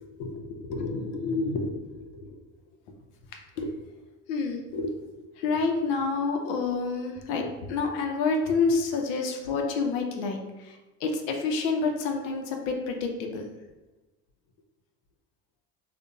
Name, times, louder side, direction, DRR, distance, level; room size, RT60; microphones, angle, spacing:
voice 1, 0.2-2.4 3.3-3.7 4.3-4.9 5.4-13.5, left 4 dB, 70° left, 3 dB, 0.6 m, -29 dB
2.6 x 2.1 x 2.5 m, 1.1 s
hypercardioid pair, 65°, 46 cm